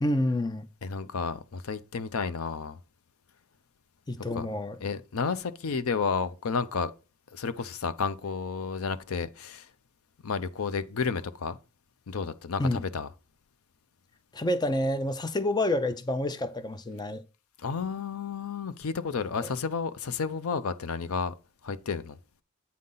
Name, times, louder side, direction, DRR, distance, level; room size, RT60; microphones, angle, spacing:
voice 1, 0.0-0.7 4.1-4.8 12.6-12.8 14.3-17.2 19.3-19.5, left 1 dB, 20° left, 0.5 m, -28 dB
voice 2, 0.8-2.8 4.3-4.5 4.8-6.9 7.3-9.7 10.2-11.6 12.1-13.1 17.6-21.3 21.6-22.2, left 5 dB, 75° left, 0.6 m, -31 dB
8.6 x 3.9 x 5.5 m
head